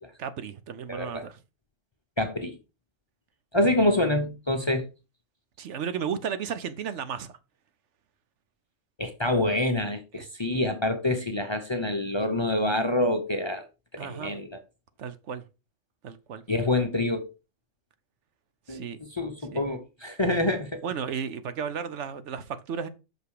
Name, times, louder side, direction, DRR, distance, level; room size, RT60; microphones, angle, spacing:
voice 1, 0.2-1.4 5.6-7.3 10.2-10.3 14.0-14.4 15.0-15.4 16.0-16.4 18.7-19.0 19.5-19.6 20.8-22.9, right 7 dB, 70° right, 1.0 m, -34 dB
voice 2, 0.9-1.3 2.2-2.6 3.5-4.9 9.0-13.7 13.9-14.6 16.5-17.3 18.7-18.8 19.1-20.8, left 1 dB, 25° left, 0.7 m, -26 dB
6.2 x 5.3 x 4.8 m
omnidirectional pair, 1.3 m